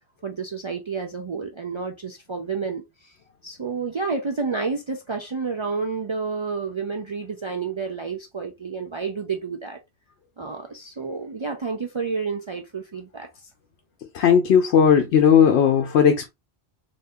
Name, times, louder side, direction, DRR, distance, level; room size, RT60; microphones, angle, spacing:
voice 1, 0.2-3.1 3.4-9.8 10.4-13.5, right 4 dB, 50° right, 0.3 m, -30 dB
voice 2, 14.1-16.3, left 7 dB, 85° left, 0.9 m, -16 dB
3.5 x 2.7 x 2.6 m
omnidirectional pair, 1.1 m